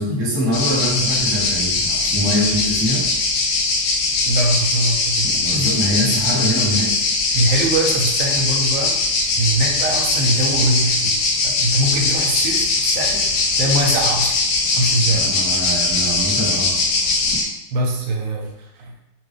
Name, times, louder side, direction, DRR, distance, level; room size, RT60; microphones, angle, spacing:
voice 1, 0.0-3.1 5.2-6.9 15.1-16.7, equal, 25° right, -7 dB, 1.1 m, -23 dB
sound 1, 0.5-17.4, left 3 dB, 85° left, 2.2 m, -20 dB
voice 2, 4.2-5.8 7.3-9.0 9.4-14.4 14.7-15.3 17.7-19.0, right 1 dB, 80° right, 0 dB, 2.0 m, -23 dB
5.7 x 2.6 x 3.3 m, 0.89 s
omnidirectional pair, 3.4 m